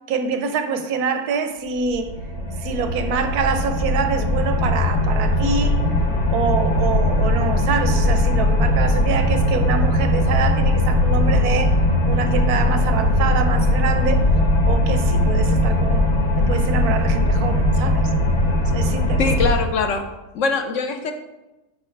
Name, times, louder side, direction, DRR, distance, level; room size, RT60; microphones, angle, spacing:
voice 1, 0.1-2.1 2.6-6.0 6.3-11.8 12.1-14.2 14.7-18.1 18.7-19.3, right 5 dB, 85° right, 1.2 m, -25 dB
sound 1, 1.8-19.5, left 1 dB, 80° left, 1.7 m, -19 dB
voice 2, 19.2-20.1 20.3-21.1, left 4 dB, 65° left, 0.9 m, -22 dB
10.5 x 3.8 x 4.5 m
omnidirectional pair, 1.6 m